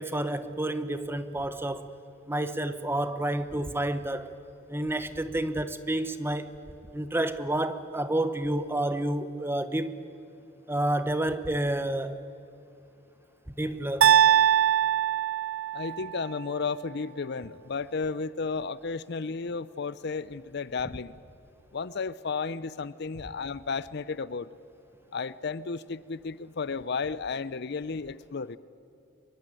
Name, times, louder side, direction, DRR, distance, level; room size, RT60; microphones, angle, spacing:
voice 1, 0.0-1.9 2.3-4.3 4.7-6.6 6.9-9.9 10.7-12.2 13.6-14.2, right 1 dB, 10° right, 0.9 m, -29 dB
sound 1, 14.0-16.1, right 10 dB, 75° right, 0.8 m, -22 dB
voice 2, 15.7-21.2 21.7-24.5 25.1-28.6, left 4 dB, 55° left, 0.5 m, -33 dB
24.0 x 22.5 x 9.0 m
head